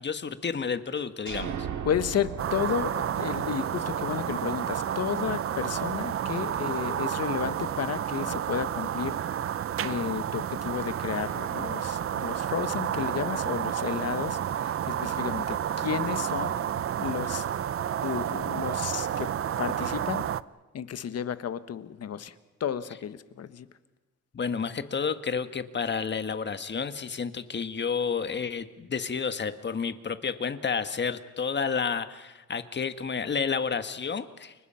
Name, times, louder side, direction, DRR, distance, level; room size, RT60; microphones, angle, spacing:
voice 1, 0.0-1.7 24.3-34.5, left 6 dB, 35° left, 10 dB, 1.6 m, -30 dB
sound 1, 1.3-4.9, right 8 dB, 75° right, 2.3 m, -38 dB
voice 2, 1.8-9.2 9.8-16.6 17.0-17.4 18.0-19.3 19.6-20.3 20.7-22.3 22.6-23.7, left 8 dB, 55° left, 12 dB, 1.4 m, -32 dB
sound 2, 2.4-20.4, right 10 dB, 45° right, 0.7 m, -30 dB
30.0 x 23.5 x 5.7 m, 1.2 s
cardioid pair, 90°, 30 cm